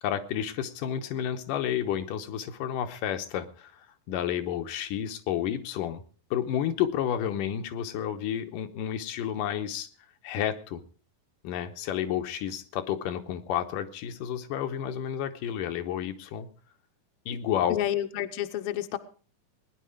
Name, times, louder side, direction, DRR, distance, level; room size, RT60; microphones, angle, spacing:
voice 1, 0.0-6.0 6.3-9.9 10.2-10.8 11.4-16.5 17.3-17.8, left 10 dB, 85° left, 8 dB, 2.6 m, -31 dB
voice 2, 17.7-19.0, left 12 dB, 65° left, 8 dB, 1.4 m, -30 dB
20.0 x 10.5 x 5.0 m, 0.40 s
omnidirectional pair, 3.8 m